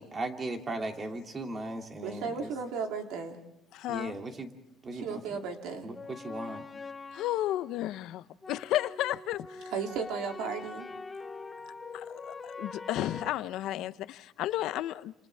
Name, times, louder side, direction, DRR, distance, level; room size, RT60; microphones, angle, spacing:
voice 1, 0.0-2.5 3.9-4.5 4.8-5.4 5.8-6.6, right 2 dB, 25° right, 2.8 m, -37 dB
voice 2, 2.0-3.4 4.9-5.9 9.7-10.9, right 5 dB, 85° right, 3.0 m, -35 dB
voice 3, 3.7-4.2 7.1-9.7 11.9-15.1, left 14 dB, 75° left, 0.8 m, -33 dB
sound 1, 5.9-7.7 8.4-13.3, left 3 dB, 20° left, 1.1 m, -43 dB
30.0 x 27.5 x 3.6 m
cardioid pair, 130°, 0 cm